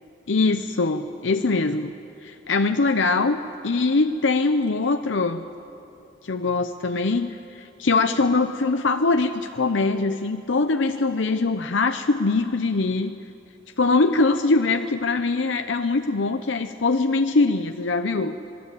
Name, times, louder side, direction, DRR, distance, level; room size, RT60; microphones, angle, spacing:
voice 1, 0.3-1.9 2.2-5.4 6.2-13.1 13.8-18.4, left 3 dB, 70° left, 7 dB, 0.7 m, -22 dB
27.5 x 20.0 x 8.4 m, 2.8 s
head